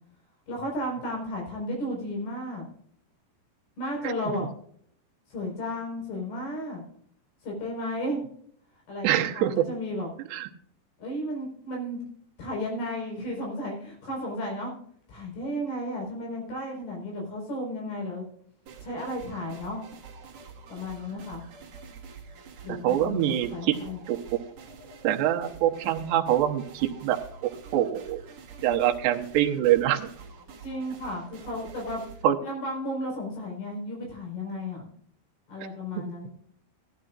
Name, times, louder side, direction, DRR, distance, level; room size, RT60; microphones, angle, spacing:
voice 1, 0.5-2.7 3.8-4.5 5.3-6.8 7.4-8.2 8.9-10.1 11.0-12.0 12.4-14.7 15.1-18.3 18.8-19.8 20.7-21.4 22.6-24.0 30.6-32.0 32.4-34.9 35.5-36.3, left 1 dB, 65° left, 0 dB, 6.5 m, -33 dB
voice 2, 9.0-9.7 10.3-10.5 22.7-23.8 24.1-24.4 25.0-28.2 28.6-30.1 32.2-32.4 36.0-36.1, right 12 dB, 85° right, 3 dB, 3.1 m, -25 dB
sound 1, 18.7-32.2, right 5 dB, 50° right, 2.6 m, -47 dB
16.5 x 12.5 x 2.5 m, 0.64 s
omnidirectional pair, 4.9 m